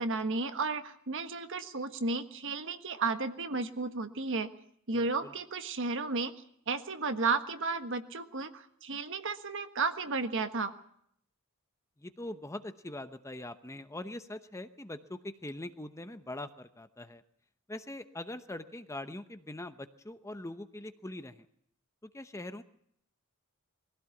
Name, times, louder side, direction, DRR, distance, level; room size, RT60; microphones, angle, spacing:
voice 1, 0.0-4.5 4.9-6.3 6.7-10.7, right 3 dB, 55° right, 9 dB, 1.4 m, -33 dB
voice 2, 4.9-5.3 12.0-17.2 17.7-21.5 22.0-22.6, left 1 dB, 15° left, 10 dB, 0.8 m, -42 dB
22.0 x 16.0 x 8.4 m, 0.69 s
head